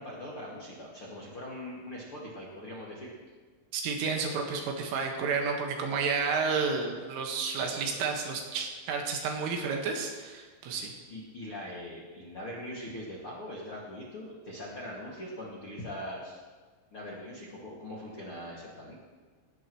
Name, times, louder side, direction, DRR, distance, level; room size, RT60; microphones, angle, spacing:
voice 1, 0.0-3.1 7.8-8.0 11.1-16.4 16.9-18.9, left 1 dB, 45° left, -5 dB, 1.8 m, -41 dB
voice 2, 3.7-10.9, right 5 dB, 75° right, 2 dB, 4.1 m, -31 dB
18.0 x 17.5 x 3.2 m, 1.4 s
omnidirectional pair, 5.9 m